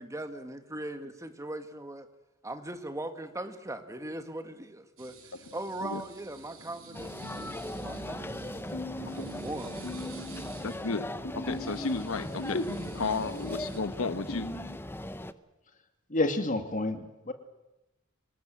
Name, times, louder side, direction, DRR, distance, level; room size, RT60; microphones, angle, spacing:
voice 1, 0.0-2.1 2.4-5.2 5.5-10.0, right 1 dB, 15° right, 8 dB, 1.7 m, -40 dB
sound 1, 5.0-13.8, right 3 dB, 85° right, 5.1 m, -49 dB
sound 2, 6.9-15.3, left 1 dB, 10° left, 0.8 m, -39 dB
sound 3, 8.7-10.9 11.2-14.8, left 1 dB, 55° left, 3.0 m, -39 dB
voice 2, 10.6-12.7 12.9-14.5, left 3 dB, 85° left, 12 dB, 1.1 m, -33 dB
voice 3, 16.1-17.3, left 2 dB, 40° left, 7 dB, 2.3 m, -29 dB
25.5 x 19.5 x 7.8 m, 0.95 s
head